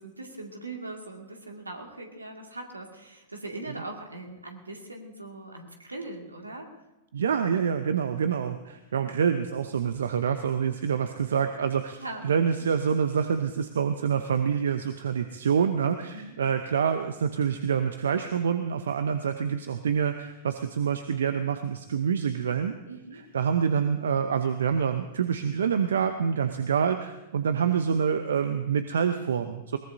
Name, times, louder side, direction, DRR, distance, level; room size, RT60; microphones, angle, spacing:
voice 1, 0.0-6.8 7.5-7.7 10.6-10.7 12.0-12.2 16.1-16.4 22.9-23.2, right 2 dB, 90° right, 2 dB, 2.2 m, -40 dB
voice 2, 7.1-22.7 23.1-29.8, right 7 dB, 70° right, 9 dB, 0.8 m, -26 dB
21.5 x 19.0 x 2.7 m, 1.0 s
figure-of-eight pair, 100°, 0 cm